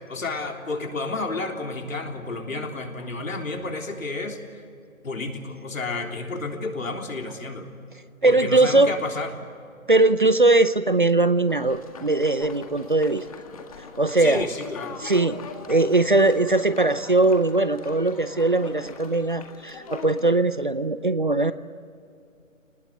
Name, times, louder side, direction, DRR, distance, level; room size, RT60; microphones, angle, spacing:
voice 1, 0.1-4.6 5.0-7.7 8.2-9.3 14.2-15.0, left 3 dB, 70° left, 2 dB, 3.7 m, -31 dB
voice 2, 8.2-8.9 9.9-13.3 14.0-14.5 15.0-15.4 15.7-21.5, right 2 dB, 40° right, 14 dB, 0.5 m, -20 dB
sound 1, 11.5-20.4, left 4 dB, 25° left, 1.7 m, -42 dB
27.0 x 20.0 x 7.8 m, 2.4 s
hypercardioid pair, 170°, 41 cm